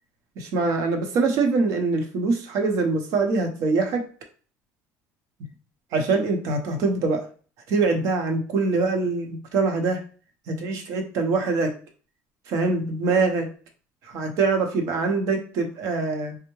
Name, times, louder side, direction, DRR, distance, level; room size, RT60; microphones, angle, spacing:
voice 1, 0.4-4.0 5.9-7.2 7.7-10.0 10.5-11.7 12.5-13.5 14.0-16.4, right 3 dB, 65° right, 4 dB, 0.8 m, -24 dB
3.5 x 2.1 x 3.1 m, 0.40 s
cardioid pair, 130°, 6 cm